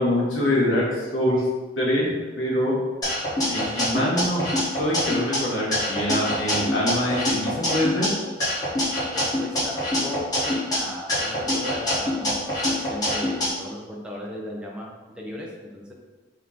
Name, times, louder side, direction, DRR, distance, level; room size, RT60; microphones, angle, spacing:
voice 1, 0.0-1.4 1.8-2.8 3.5-4.4 4.8-8.1, left 1 dB, 85° left, -5 dB, 1.3 m, -24 dB
sound 1, 3.0-5.4 5.7-8.1 8.4-10.8 11.1-13.5, left 1 dB, 20° left, 1.3 m, -25 dB
voice 2, 9.1-12.5 12.9-15.9, left 1 dB, 5° right, -3 dB, 0.6 m, -36 dB
3.5 x 3.0 x 3.8 m, 1.3 s
head